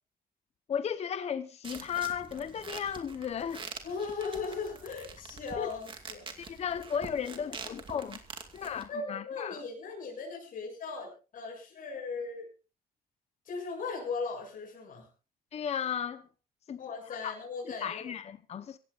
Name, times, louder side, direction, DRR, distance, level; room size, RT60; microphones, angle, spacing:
voice 1, 0.7-3.7 5.6-5.7 6.4-8.2 8.5-9.6 15.5-16.3 16.7-16.8 17.2-17.3 17.8-18.8, left 8 dB, 45° left, 0.9 m, -35 dB
sound 1, 1.6-8.9, right 5 dB, 35° right, 2.4 m, -46 dB
voice 2, 3.8-6.6 8.9-12.5 13.5-15.1 16.8-18.1, left 4 dB, 60° left, 7.3 m, -38 dB
25.5 x 16.0 x 2.5 m
cardioid pair, 140°, 15 cm